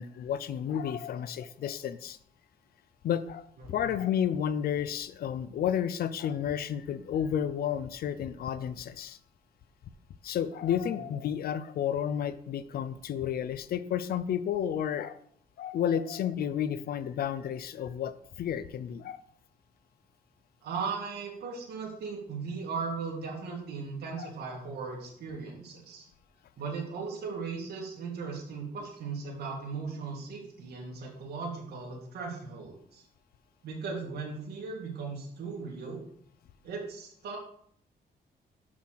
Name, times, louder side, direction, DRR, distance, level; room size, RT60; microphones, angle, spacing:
voice 1, 0.0-2.2 3.0-9.2 10.2-15.2 15.6-18.1 18.4-19.2 24.2-24.3, left 9 dB, 65° left, 14 dB, 0.6 m, -31 dB
voice 2, 20.6-26.1 26.6-33.0 33.6-36.0 36.6-37.4, right 5 dB, 75° right, -3 dB, 2.3 m, -37 dB
6.5 x 6.0 x 5.9 m, 0.66 s
cardioid pair, 135°, 17 cm